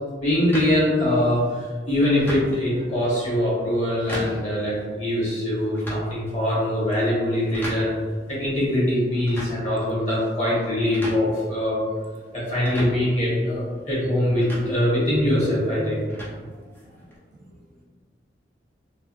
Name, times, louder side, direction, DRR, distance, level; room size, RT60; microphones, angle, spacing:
voice 1, 0.2-7.9 8.3-11.8 12.3-16.0, left 1 dB, 35° left, -8 dB, 1.3 m, -23 dB
sound 1, 0.5-17.2, equal, 10° left, 0.5 m, -40 dB
voice 2, 16.3-17.8, right 1 dB, 45° right, -1 dB, 0.4 m, -54 dB
3.4 x 2.4 x 2.3 m, 1.5 s
head